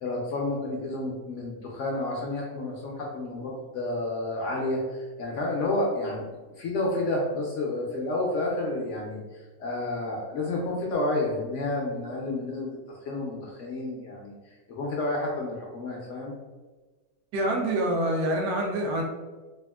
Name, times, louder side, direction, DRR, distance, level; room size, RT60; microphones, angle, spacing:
voice 1, 0.0-6.3 6.6-12.8 13.0-16.3, left 2 dB, 70° left, -2 dB, 0.8 m, -30 dB
voice 2, 17.3-19.0, right 1 dB, 75° right, 1 dB, 1.0 m, -26 dB
3.4 x 2.4 x 2.2 m, 1.3 s
omnidirectional pair, 1.6 m